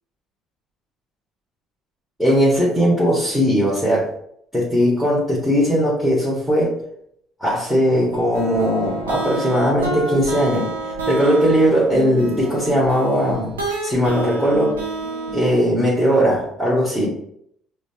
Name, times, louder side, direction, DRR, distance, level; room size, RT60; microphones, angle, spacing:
voice 1, 2.2-4.0 4.5-6.7 7.4-10.7 11.1-13.5 13.8-14.8 15.3-17.1, equal, 5° right, -6 dB, 1.5 m, -18 dB
sound 1, 8.1-15.7, right 2 dB, 90° right, 0.7 m, -29 dB
4.9 x 2.3 x 2.8 m, 0.70 s
hypercardioid pair, 60°, 0 cm